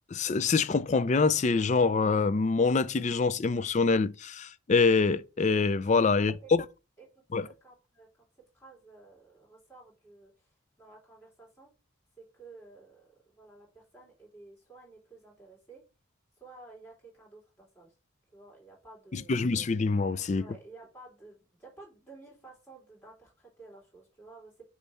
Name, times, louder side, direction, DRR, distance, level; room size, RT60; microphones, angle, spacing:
voice 1, 0.1-6.6 7.3-7.5 19.1-20.4, left 4 dB, 35° left, 0.4 m, -25 dB
voice 2, 7.0-8.1 8.5-11.7 12.2-15.8 16.4-17.9 18.3-19.4 20.3-24.6, right 3 dB, 10° left, 3.4 m, -53 dB
6.8 x 3.2 x 5.5 m
head